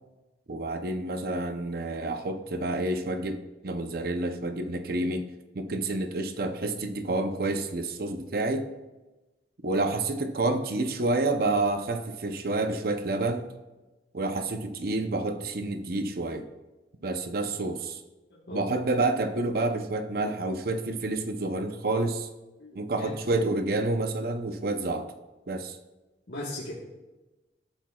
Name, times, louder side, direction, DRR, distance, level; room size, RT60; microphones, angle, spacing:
voice 1, 0.5-3.4 3.6-8.7 9.6-13.5 14.1-16.5 17.0-18.0 18.5-22.3 22.7-25.1 25.5-25.8, right 2 dB, 55° right, 8 dB, 0.7 m, -29 dB
voice 2, 18.3-18.7 22.6-23.1 23.4-23.5 26.3-26.7, left 1 dB, 80° left, -5 dB, 1.4 m, -38 dB
13.5 x 7.4 x 2.3 m, 1.1 s
head